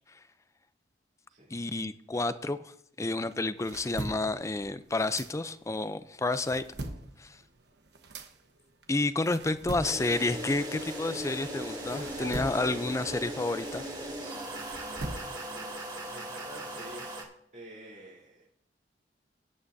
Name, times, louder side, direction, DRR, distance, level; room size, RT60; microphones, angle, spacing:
voice 1, 1.5-2.7 3.0-6.6 7.2-7.4 8.9-13.8, left 2 dB, 15° left, 13 dB, 0.4 m, -30 dB
sound 1, 3.3-5.8 6.2-11.5 11.9-15.6, right 2 dB, 70° right, 1.1 m, -42 dB
sound 2, 9.8-17.2, right 1 dB, 25° right, 2.2 m, -38 dB
voice 2, 16.1-17.3 17.5-18.4, right 1 dB, 45° right, -7 dB, 3.6 m, -48 dB
18.5 x 8.7 x 2.7 m, 0.70 s
head